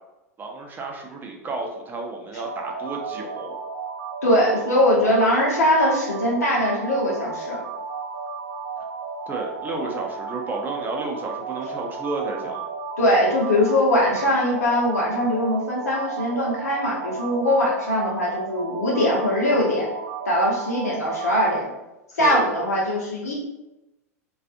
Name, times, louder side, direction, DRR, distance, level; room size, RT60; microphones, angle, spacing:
voice 1, 0.4-3.6 9.3-12.7 22.2-22.5, right 3 dB, 20° right, 1 dB, 0.5 m, -31 dB
sound 1, 2.3-21.6, right 5 dB, 80° right, 0.4 m, -33 dB
voice 2, 4.2-7.6 13.0-19.9 20.3-21.7 22.1-23.3, left 1 dB, 75° left, -4 dB, 0.9 m, -21 dB
2.5 x 2.4 x 2.5 m, 0.97 s
figure-of-eight pair, 90°, 8 cm